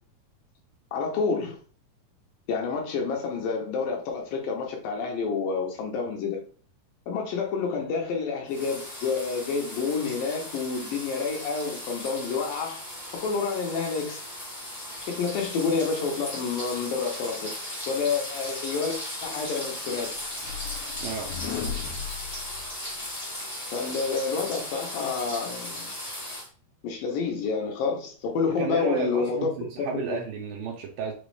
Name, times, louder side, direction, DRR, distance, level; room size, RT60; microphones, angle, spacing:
voice 1, 0.9-1.6 2.5-6.4 7.1-12.8 13.1-14.2 15.1-17.6 17.9-20.2 23.7-25.9 26.8-29.5 29.8-30.2, left 5 dB, 75° left, 2.3 m, -29 dB
sound 1, 8.5-26.5, left 1 dB, 30° left, 0.8 m, -37 dB
sound 2, 19.6-23.1, left 7 dB, 90° left, 2.7 m, -37 dB
voice 2, 21.0-21.3 28.5-31.1, right 6 dB, 80° right, 2.2 m, -32 dB
6.0 x 2.4 x 3.2 m
omnidirectional pair, 4.5 m